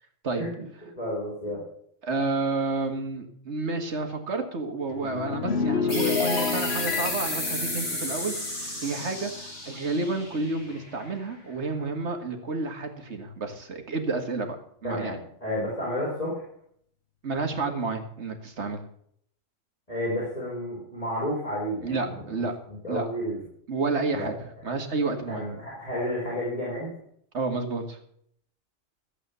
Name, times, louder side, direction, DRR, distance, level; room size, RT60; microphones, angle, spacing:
voice 1, 1.0-1.6 14.8-16.4 19.9-22.5 22.8-23.4 24.1-24.3 25.3-26.9, equal, 30° left, -6 dB, 4.6 m, -31 dB
voice 2, 2.0-14.6 14.8-15.2 17.2-18.8 21.8-22.5 22.9-23.1 23.7-24.3 24.6-25.4 27.3-28.0, right 3 dB, 65° right, 5 dB, 2.1 m, -30 dB
sound 1, 4.9-9.5 9.8-10.1, left 5 dB, 60° left, 1.1 m, -30 dB
sound 2, 5.9-11.2, left 1 dB, 85° left, 6.0 m, -33 dB
14.0 x 8.3 x 6.9 m, 0.66 s
omnidirectional pair, 1.2 m